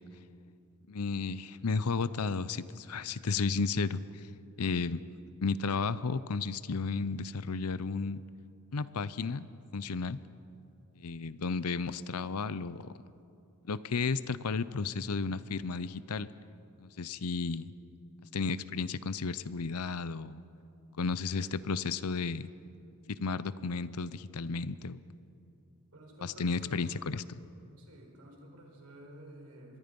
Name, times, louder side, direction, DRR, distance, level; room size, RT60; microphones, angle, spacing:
voice 1, 0.9-4.3 4.6-5.0 5.4-8.2 8.7-10.2 11.0-13.0 13.7-16.3 16.8-17.7 18.3-20.4 21.0-22.5 23.1-25.0 26.2-27.2, left 4 dB, 85° left, 16 dB, 0.7 m, -33 dB
voice 2, 25.9-27.0 27.8-29.8, right 1 dB, 75° right, 1 dB, 4.9 m, -52 dB
25.5 x 22.0 x 5.4 m, 2.7 s
head